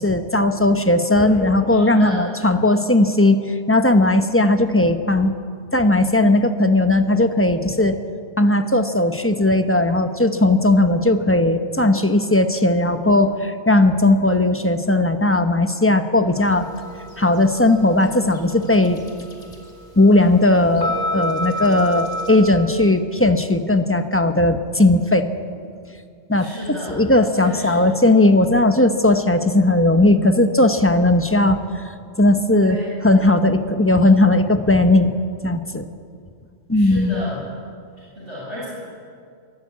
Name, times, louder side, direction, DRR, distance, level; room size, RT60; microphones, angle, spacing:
voice 1, 0.0-5.3 5.7-8.0 8.4-16.7 17.2-19.0 20.0-25.3 26.3-26.5 26.9-31.6 32.2-32.8 33.0-35.1 35.4-35.8 36.7-37.2, left 2 dB, 10° left, 8 dB, 1.0 m, -17 dB
voice 2, 1.7-2.2 26.3-26.9 27.4-27.8 32.6-32.9 36.7-37.4 38.2-38.7, left 1 dB, 90° right, -7 dB, 7.4 m, -32 dB
sound 1, 16.4-22.3, equal, 75° left, 3.0 m, -31 dB
24.0 x 13.5 x 8.5 m, 2.2 s
omnidirectional pair, 1.2 m